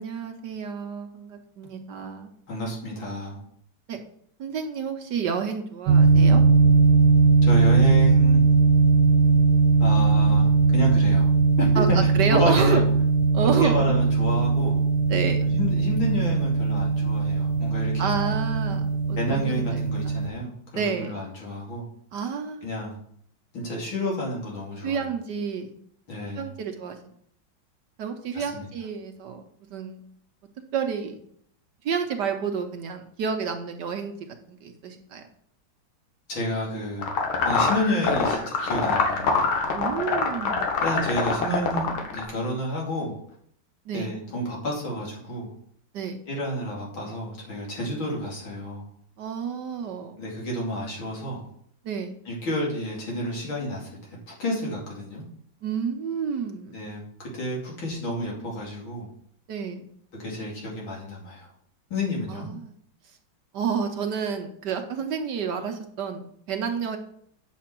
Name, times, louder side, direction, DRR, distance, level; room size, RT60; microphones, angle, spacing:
voice 1, 0.0-2.3 3.9-4.0 4.4-6.4 11.8-12.8 13.3-13.9 15.1-15.4 18.0-18.8 19.1-19.8 20.0-20.1 20.7-21.1 22.1-22.7 24.8-25.7 26.4-27.0 28.0-29.4 29.7-30.0 30.7-31.2 31.8-34.1 34.5-35.2 39.7-40.7 43.9-44.1 45.9-46.2 49.2-50.2 51.8-52.2 55.6-56.8 59.5-59.9 62.3-62.7 63.5-67.0, right 6 dB, 65° right, 5 dB, 1.3 m, -29 dB
voice 2, 2.5-3.4 7.4-8.4 9.8-11.3 11.6-12.8 13.6-14.8 15.5-18.3 19.2-21.8 22.6-23.0 23.5-25.1 26.1-26.5 28.3-28.7 36.3-37.1 37.4-39.4 40.8-43.2 43.9-45.5 46.3-48.8 50.2-51.4 52.2-55.2 56.7-59.1 60.1-61.5 61.9-62.5, equal, 70° left, -3 dB, 3.4 m, -30 dB
sound 1, 5.9-20.3, right 4 dB, 85° right, 1.8 m, -19 dB
sound 2, 37.0-42.2, left 4 dB, 90° left, 2.1 m, -24 dB
8.4 x 6.8 x 4.4 m, 0.66 s
omnidirectional pair, 2.2 m